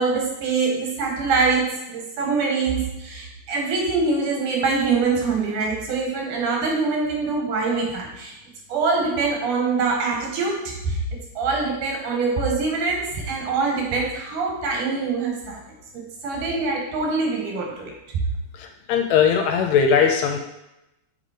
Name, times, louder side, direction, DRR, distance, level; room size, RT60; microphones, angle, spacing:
voice 1, 0.0-8.3 8.7-15.6 15.9-17.9, right 4 dB, 90° right, 0 dB, 2.8 m, -24 dB
voice 2, 18.5-20.4, left 7 dB, 80° left, 4 dB, 1.7 m, -19 dB
6.6 x 3.7 x 5.0 m, 0.90 s
omnidirectional pair, 3.4 m